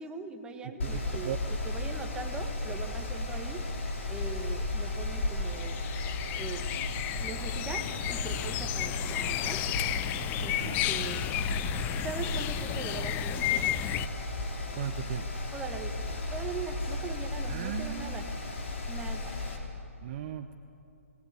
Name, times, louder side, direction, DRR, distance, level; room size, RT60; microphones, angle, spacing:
voice 1, 0.0-3.6 4.1-5.8 6.3-6.8 7.2-9.6 10.3-11.3 12.0-13.5 15.5-15.9 16.3-18.2 18.8-19.4, right 5 dB, 10° right, 3 dB, 1.8 m, -41 dB
Mechanical fan, 0.8-19.6, left 2 dB, 60° left, 4.5 m, -35 dB
voice 2, 0.8-1.4 10.6-10.8 14.8-15.2 17.4-18.4 20.0-20.5, right 11 dB, 40° right, 8 dB, 0.9 m, -37 dB
sound 1, 5.5-14.1, left 13 dB, 20° left, 0.6 m, -33 dB
27.0 x 19.0 x 8.5 m, 2.7 s
figure-of-eight pair, 135°, 8 cm